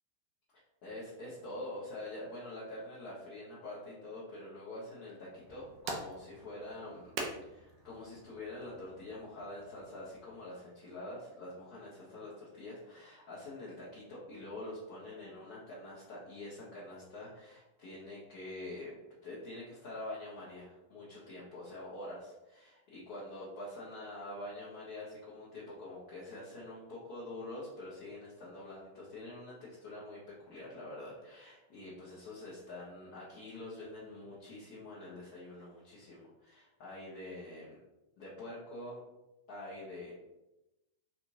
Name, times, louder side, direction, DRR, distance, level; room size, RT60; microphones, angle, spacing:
voice 1, 0.8-7.1 7.5-19.0 19.2-37.8 38.2-39.0 39.5-40.1, left 1 dB, 45° left, -7 dB, 1.2 m, -46 dB
sound 1, 5.3-10.4, right 3 dB, 45° right, 0.7 m, -45 dB
4.2 x 2.9 x 2.7 m, 0.96 s
figure-of-eight pair, 90°, 0 cm